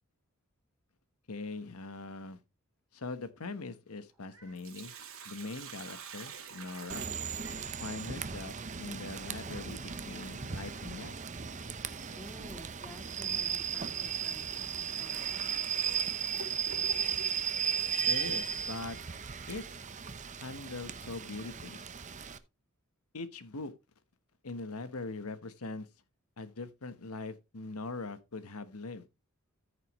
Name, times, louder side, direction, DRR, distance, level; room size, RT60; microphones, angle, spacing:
voice 1, 1.3-2.4 2.9-4.9 5.2-7.1 7.8-11.1 18.1-19.0 19.5-19.6 20.3-21.8 23.1-23.7 24.4-25.9 26.4-29.1, left 3 dB, 85° left, 1.1 m, -41 dB
Meow, 4.1-4.6 5.1-5.2 7.3-7.9 9.5-9.6 10.1-10.4, right 2 dB, 15° right, 4.3 m, -60 dB
Sink (filling or washing), 4.3-7.9 10.3-10.4 12.3-12.5 13.0-13.1 13.9-14.1 14.7-14.8 15.5-17.4, right 5 dB, 70° right, 2.5 m, -48 dB
Rain / Train, 6.9-22.4, right 7 dB, 35° right, 0.7 m, -36 dB
voice 2, 12.2-15.3, left 1 dB, 10° left, 1.9 m, -51 dB
14.0 x 6.6 x 3.1 m
head